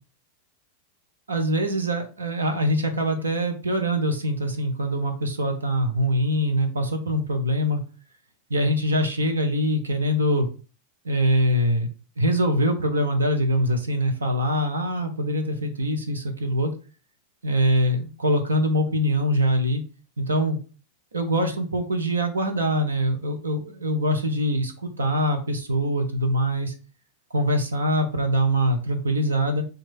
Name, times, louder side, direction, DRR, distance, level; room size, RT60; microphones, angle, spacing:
voice 1, 1.3-7.8 8.5-10.5 11.0-11.9 12.2-16.7 17.4-19.8 20.2-20.6 21.1-26.7 27.3-29.6, equal, 90° right, 5 dB, 0.8 m, -23 dB
3.0 x 2.6 x 4.3 m, 0.36 s
hypercardioid pair, 95°, 0 cm